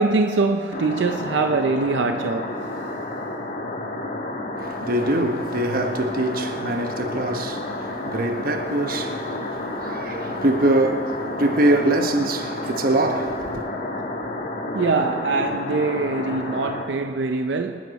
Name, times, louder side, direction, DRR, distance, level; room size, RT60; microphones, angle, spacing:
voice 1, 0.0-2.6 14.2-14.3 14.7-17.8, right 3 dB, 85° right, 0.6 m, -23 dB
sound 1, 0.7-16.8, left 2 dB, 45° left, 1.7 m, -30 dB
voice 2, 4.6-13.7, right 1 dB, 55° right, 1.0 m, -23 dB
26.0 x 9.7 x 4.1 m
head